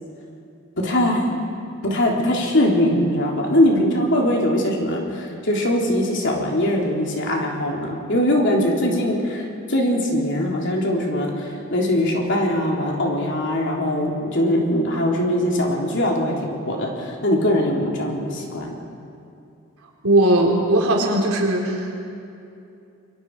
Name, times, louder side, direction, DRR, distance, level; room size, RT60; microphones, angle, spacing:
voice 1, 0.8-1.4 1.8-18.8, left 1 dB, 55° left, -1 dB, 3.5 m, -21 dB
voice 2, 20.0-21.9, right 1 dB, 85° right, -1 dB, 4.1 m, -18 dB
29.0 x 23.5 x 4.9 m, 2.6 s
head